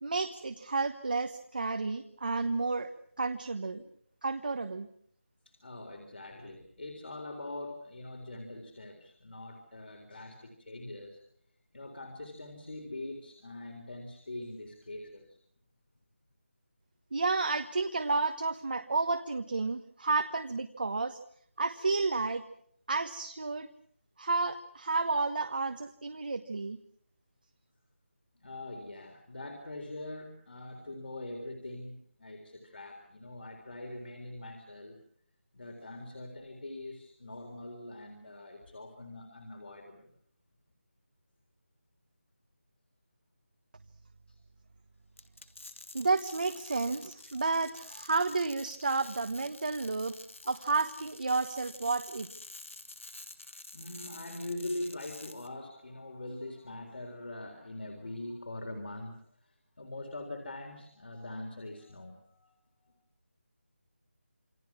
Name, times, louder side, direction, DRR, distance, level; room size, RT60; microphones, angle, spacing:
voice 1, 0.0-2.9 3.2-3.8 4.2-4.9 17.1-21.2 21.6-22.4 22.9-23.7 24.2-26.8 45.9-50.1 50.5-52.3, right 3 dB, 45° right, 8 dB, 1.2 m, -31 dB
voice 2, 5.5-11.2 11.7-15.4 28.3-35.0 35.5-40.1 44.3-44.4 47.6-47.7 48.9-49.1 50.5-50.7 53.7-62.5 62.8-62.9, left 2 dB, 55° left, 3 dB, 4.0 m, -43 dB
sound 1, 45.2-55.5, left 2 dB, 85° left, 3.1 m, -49 dB
28.0 x 24.0 x 6.0 m, 0.64 s
figure-of-eight pair, 175°, 7 cm